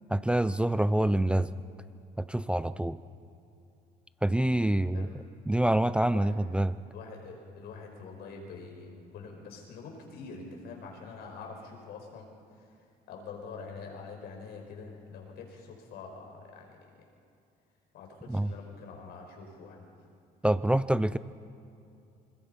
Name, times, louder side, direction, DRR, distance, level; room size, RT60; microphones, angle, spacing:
voice 1, 0.1-1.5 2.2-3.0 4.2-5.1 5.5-6.7 18.3-18.5 20.4-21.2, right 1 dB, 5° right, 14 dB, 0.5 m, -26 dB
voice 2, 4.8-5.1 6.1-6.4 6.9-12.3 12.6-12.7 13.1-17.1 17.9-19.9, left 4 dB, 75° left, 1 dB, 5.1 m, -45 dB
26.0 x 20.5 x 5.4 m, 2.7 s
cardioid pair, 110°, 17 cm